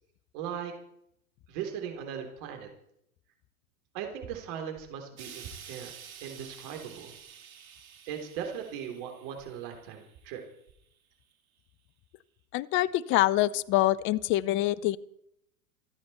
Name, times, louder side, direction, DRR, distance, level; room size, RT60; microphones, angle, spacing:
voice 1, 0.3-0.7 1.5-2.7 3.9-5.9 6.2-7.1 8.1-10.4, right 8 dB, 45° right, 4 dB, 3.5 m, -38 dB
Explosion, 5.2-10.5 11.3-11.4, right 8 dB, 70° right, 2.7 m, -50 dB
voice 2, 12.5-15.0, left 15 dB, 30° left, 21 dB, 0.6 m, -25 dB
28.0 x 9.5 x 4.3 m, 0.74 s
figure-of-eight pair, 100°, 44 cm